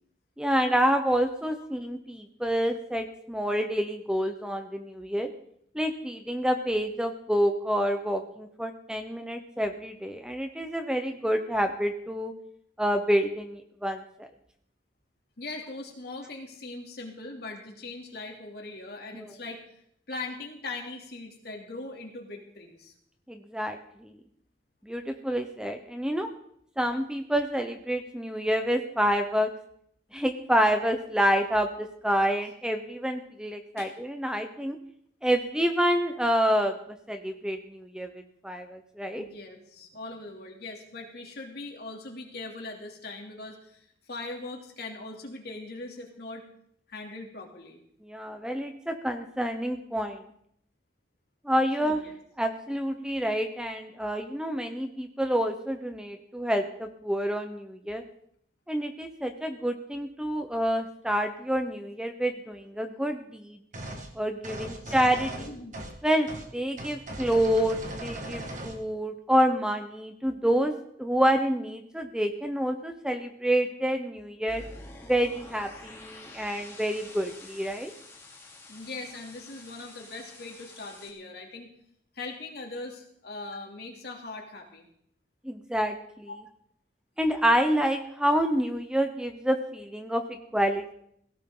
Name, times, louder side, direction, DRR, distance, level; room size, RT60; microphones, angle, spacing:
voice 1, 0.4-5.3 5.7-12.3 12.8-14.3 19.1-19.3 23.3-24.2 24.8-26.3 26.8-29.5 30.1-34.8 35.2-36.7 37.1-39.3 48.0-50.2 51.4-52.0 52.4-58.0 58.7-63.6 64.1-65.5 66.0-74.6 75.0-77.9 85.4-86.3 87.2-90.9, equal, 5° right, 6 dB, 0.9 m, -28 dB
voice 2, 15.4-19.6 20.1-22.9 33.8-33.9 39.2-46.4 46.9-47.8 51.8-52.2 64.6-64.9 65.3-65.7 78.7-81.7 82.1-84.8 86.3-86.4, left 2 dB, 55° left, 1 dB, 3.1 m, -40 dB
sound 1, 63.7-64.1 64.4-66.0 66.3-66.5 66.8-68.8, right 1 dB, 40° right, 2.0 m, -38 dB
sound 2, 74.5-81.1, left 2 dB, 15° left, 3.3 m, -48 dB
17.0 x 17.0 x 4.0 m, 0.70 s
head